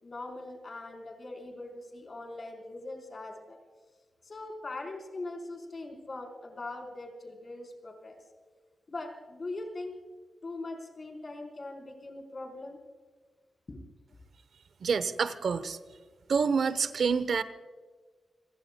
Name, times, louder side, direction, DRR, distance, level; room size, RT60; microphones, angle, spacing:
voice 1, 0.0-3.6 4.2-8.2 8.9-10.0 10.4-12.8 13.7-13.8, left 2 dB, 40° left, 2 dB, 4.4 m, -41 dB
voice 2, 14.8-15.8 16.3-17.4, right 5 dB, 65° right, 13 dB, 0.9 m, -27 dB
29.5 x 21.0 x 2.3 m, 1.5 s
wide cardioid pair, 115°, 0 cm